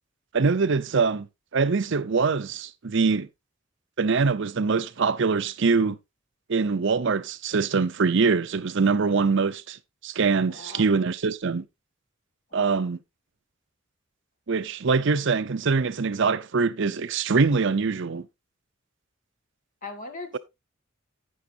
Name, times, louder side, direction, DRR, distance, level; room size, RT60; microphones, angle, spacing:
voice 1, 0.3-1.3 1.5-3.3 4.0-6.0 6.5-11.7 12.5-13.0 14.5-18.3, right 4 dB, 60° right, 0.6 m, -23 dB
voice 2, 10.5-10.8 12.5-12.9 19.8-20.4, left 3 dB, 40° left, 2.1 m, -40 dB
11.0 x 9.3 x 2.7 m
head